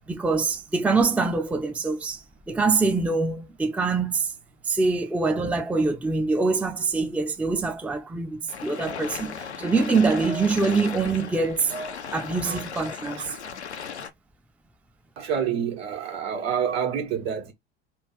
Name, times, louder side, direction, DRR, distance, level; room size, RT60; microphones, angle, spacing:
voice 1, 0.1-4.3 4.7-11.7 12.1-13.3, right 4 dB, 5° right, 0.5 m, -24 dB
sound 1, 8.5-14.1, left 7 dB, 85° left, 0.6 m, -37 dB
voice 2, 11.7-12.9 13.2-13.5 15.2-17.5, right 7 dB, 70° right, 1.5 m, -29 dB
3.4 x 2.4 x 3.2 m
figure-of-eight pair, 70°, 33 cm